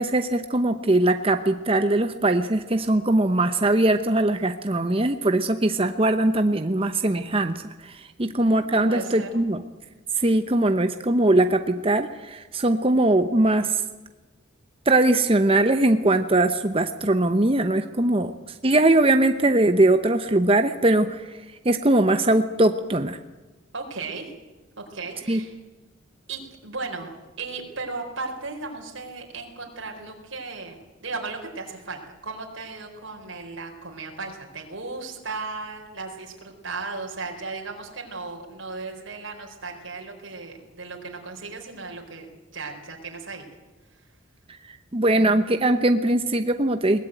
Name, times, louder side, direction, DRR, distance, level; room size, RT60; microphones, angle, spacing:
voice 1, 0.0-9.6 10.2-13.8 14.9-18.3 18.6-23.2 25.3-25.4 44.7-47.0, right 2 dB, 25° right, 8 dB, 0.9 m, -21 dB
voice 2, 8.2-9.4 23.7-24.3 24.8-25.5 26.3-43.5 43.9-44.0, right 3 dB, 70° right, 1 dB, 4.4 m, -36 dB
22.0 x 19.0 x 9.1 m, 1.2 s
head